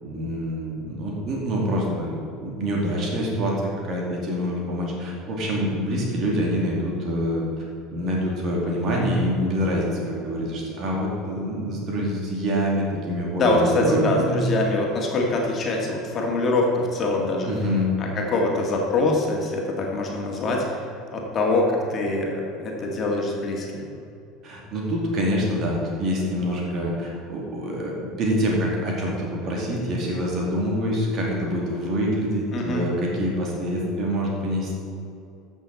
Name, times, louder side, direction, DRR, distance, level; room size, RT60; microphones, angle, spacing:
voice 1, 0.0-2.2 2.4-7.6 7.9-14.4 17.5-17.9 24.4-34.7, equal, 45° right, -2 dB, 2.6 m, -26 dB
voice 2, 13.4-17.5 18.0-20.9 21.1-23.9 32.5-32.9, left 2 dB, 35° left, 0 dB, 2.0 m, -24 dB
14.5 x 6.5 x 4.2 m, 2.6 s
figure-of-eight pair, 70°, 0 cm